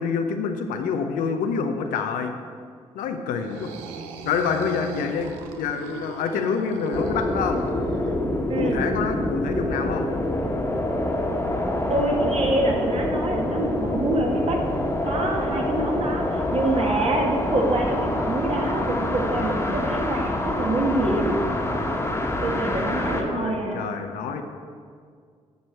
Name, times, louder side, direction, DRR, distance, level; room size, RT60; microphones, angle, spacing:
voice 1, 0.0-2.3 2.9-3.7 4.2-5.3 5.6-7.6 8.6-10.1 23.2-24.4, left 6 dB, 75° left, 6 dB, 0.8 m, -27 dB
sound 1, 3.3-8.1, right 5 dB, 90° right, 0.6 m, -39 dB
sound 2, 6.9-23.2, left 1 dB, 20° left, 1.5 m, -26 dB
voice 2, 8.5-8.9 11.9-14.6 15.0-21.4 22.4-23.9, right 2 dB, 45° right, 0 dB, 1.8 m, -26 dB
9.5 x 6.9 x 4.5 m, 2.1 s
hypercardioid pair, 50°, 14 cm